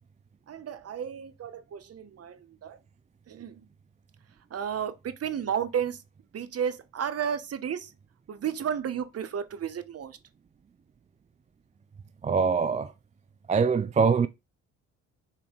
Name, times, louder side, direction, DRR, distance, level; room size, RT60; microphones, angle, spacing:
voice 1, 0.5-2.8 3.3-3.6 4.5-6.0 6.3-7.9 8.3-10.2, right 8 dB, 45° right, 1.0 m, -32 dB
voice 2, 12.2-12.9 13.5-14.3, right 5 dB, 20° right, 0.4 m, -23 dB
7.2 x 4.5 x 3.9 m
cardioid pair, 90°, 34 cm